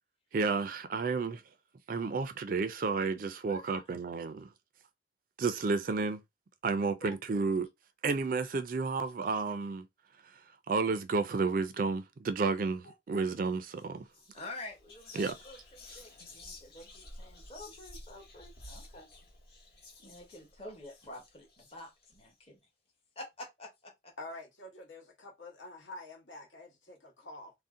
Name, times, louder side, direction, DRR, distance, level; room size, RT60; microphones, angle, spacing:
voice 1, 0.3-1.4 1.9-4.5 5.4-6.2 6.6-7.7 8.0-9.8 10.7-14.0 15.1-15.3, right 4 dB, 45° right, 0.4 m, -31 dB
voice 2, 3.4-3.8 7.0-7.2 12.8-12.9 14.3-19.1 20.0-22.6 23.2-24.1, left 2 dB, 30° left, 0.9 m, -48 dB
Whispering, 13.7-13.9 14.1-22.2, left 2 dB, 55° left, 1.1 m, -52 dB
voice 3, 24.2-27.5, left 2 dB, 75° left, 1.1 m, -47 dB
2.6 x 2.1 x 3.6 m
head